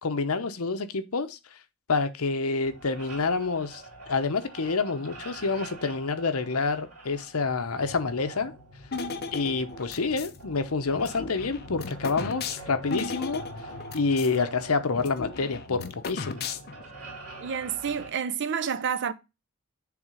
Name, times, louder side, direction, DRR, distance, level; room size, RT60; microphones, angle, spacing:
voice 1, 0.0-1.4 1.9-8.5 9.3-13.4 13.9-16.5, left 4 dB, 75° left, 0.8 m, -28 dB
sound 1, 2.6-18.1, right 1 dB, 85° right, 3.0 m, -45 dB
sound 2, 8.9-10.4 10.9-14.4 14.6-14.7 14.9-16.9, left 4 dB, 50° left, 0.8 m, -36 dB
voice 2, 17.4-19.1, right 7 dB, 55° right, 0.6 m, -29 dB
7.1 x 3.5 x 4.9 m
head